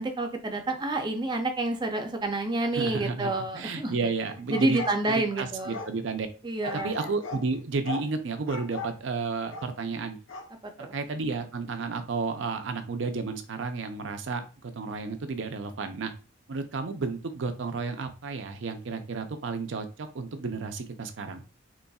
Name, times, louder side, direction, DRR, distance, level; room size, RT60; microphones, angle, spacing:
voice 1, 0.0-4.0 4.5-5.8 6.4-7.0 10.8-11.0, right 2 dB, 25° right, 5 dB, 0.5 m, -29 dB
voice 2, 2.7-4.8 5.1-6.3 6.7-10.2 10.8-16.1 16.5-21.4, right 4 dB, 70° right, 7 dB, 0.5 m, -32 dB
sound 1, 4.3-5.9 6.6-7.5 7.8-8.1 8.5-9.0 9.5-9.7 10.3-10.5, left 3 dB, 90° left, 0.6 m, -38 dB
4.0 x 3.0 x 2.3 m, 0.34 s
head